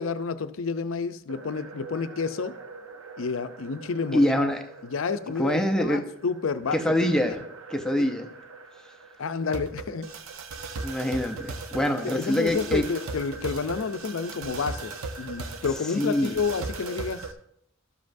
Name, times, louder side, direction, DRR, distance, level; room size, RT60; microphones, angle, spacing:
voice 1, 0.0-2.6 3.2-4.3 4.8-7.4 8.0-8.1 9.2-10.1 12.0-17.3, left 5 dB, 70° left, 12 dB, 0.5 m, -30 dB
sound 1, 1.3-17.3, right 3 dB, 85° right, 0.7 m, -39 dB
voice 2, 4.1-4.6 5.4-6.0 6.7-7.4 7.7-8.3 10.8-12.9 16.0-16.4, left 1 dB, 5° left, 4 dB, 0.6 m, -25 dB
12.5 x 7.5 x 2.6 m, 0.71 s
head